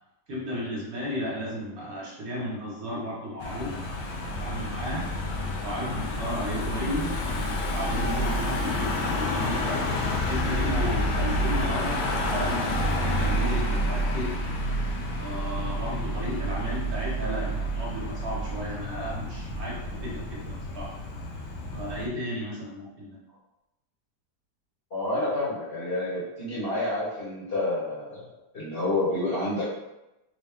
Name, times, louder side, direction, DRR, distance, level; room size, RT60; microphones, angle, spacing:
voice 1, 0.3-3.7 4.4-5.0 5.6-9.8 10.3-14.3 15.2-20.9 21.7-23.2, equal, 60° right, -5 dB, 1.6 m, -34 dB
Car passing by / Engine, 3.4-22.1, equal, 70° left, 0.7 m, -29 dB
voice 2, 6.8-7.1 24.9-28.3 28.5-29.7, left 2 dB, 40° left, -8 dB, 1.2 m, -29 dB
4.2 x 2.4 x 3.4 m, 0.94 s
omnidirectional pair, 1.8 m